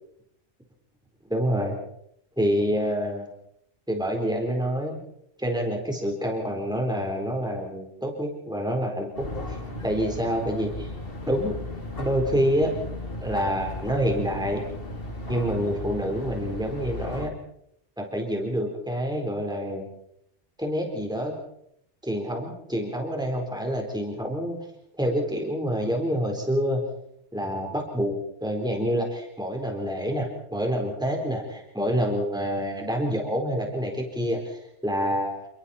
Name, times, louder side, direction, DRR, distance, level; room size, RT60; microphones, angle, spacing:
voice 1, 1.3-1.7 2.4-3.3 3.9-5.0 5.4-10.9 11.2-11.6 12.0-12.7 13.2-14.6 15.3-17.3 18.0-19.9 20.6-21.3 22.0-24.6 25.0-26.8 27.3-28.1 28.4-35.5, equal, 5° right, 1 dB, 4.2 m, -27 dB
sound 1, 9.1-17.3, left 1 dB, 50° left, 2.6 m, -35 dB
29.5 x 22.0 x 4.4 m, 0.74 s
omnidirectional pair, 1.2 m